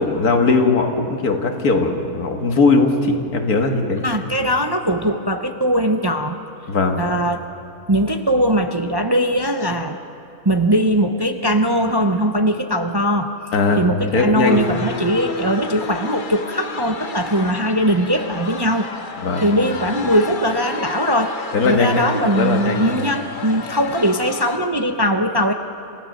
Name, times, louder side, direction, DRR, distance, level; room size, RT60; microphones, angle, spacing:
voice 1, 0.0-4.0 6.7-7.0 13.5-13.8 14.1-14.6 19.2-19.4 21.5-22.0 22.3-22.8, left 3 dB, 90° left, 4 dB, 2.2 m, -18 dB
voice 2, 4.0-6.4 7.0-7.5 7.9-10.0 10.4-13.3 13.8-18.9 19.4-25.5, equal, 25° right, 6 dB, 0.5 m, -20 dB
sound 1, 14.4-24.6, left 4 dB, 40° left, 1.0 m, -31 dB
28.5 x 16.0 x 6.5 m, 2.6 s
omnidirectional pair, 1.5 m